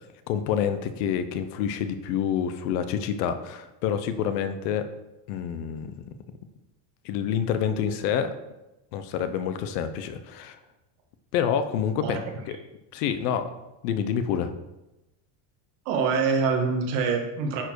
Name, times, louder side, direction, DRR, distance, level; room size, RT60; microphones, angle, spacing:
voice 1, 0.3-4.8 5.3-5.9 7.0-8.3 8.9-10.6 11.3-12.2 12.5-12.6 12.9-13.5 13.8-14.5, left 8 dB, 70° left, 10 dB, 0.9 m, -27 dB
voice 2, 15.9-17.6, right 5 dB, 75° right, 1 dB, 1.9 m, -25 dB
9.7 x 4.6 x 4.7 m, 0.98 s
cardioid pair, 180°, 48 cm